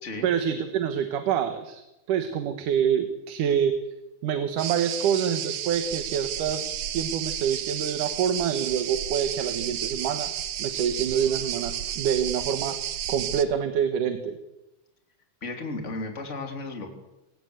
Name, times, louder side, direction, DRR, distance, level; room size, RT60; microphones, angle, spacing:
voice 1, 0.2-1.8 2.1-3.7 4.2-6.7 6.9-12.7 13.1-14.4, right 8 dB, 85° right, 7 dB, 3.0 m, -26 dB
sound 1, 4.6-13.4, right 10 dB, 65° right, 2.3 m, -32 dB
voice 2, 15.4-16.9, left 3 dB, 20° left, 4 dB, 3.3 m, -34 dB
27.5 x 18.0 x 8.1 m, 0.94 s
omnidirectional pair, 3.6 m